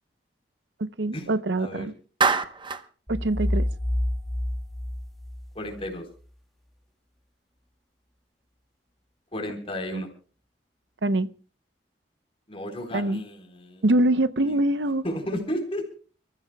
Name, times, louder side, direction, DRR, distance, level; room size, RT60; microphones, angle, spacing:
voice 1, 0.8-1.9 3.1-3.7 9.9-10.0 11.0-11.3 12.9-13.2 13.8-15.0, right 1 dB, 90° right, 0.8 m, -24 dB
Clapping, 2.2-2.9, right 4 dB, 30° right, 0.9 m, -24 dB
sound 1, 3.1-5.9, left 1 dB, ahead, 2.1 m, -28 dB
voice 2, 5.5-6.1 9.3-10.1 12.5-13.9 14.4-14.6 15.0-15.9, equal, 35° left, 3.9 m, -33 dB
30.0 x 14.5 x 2.2 m
head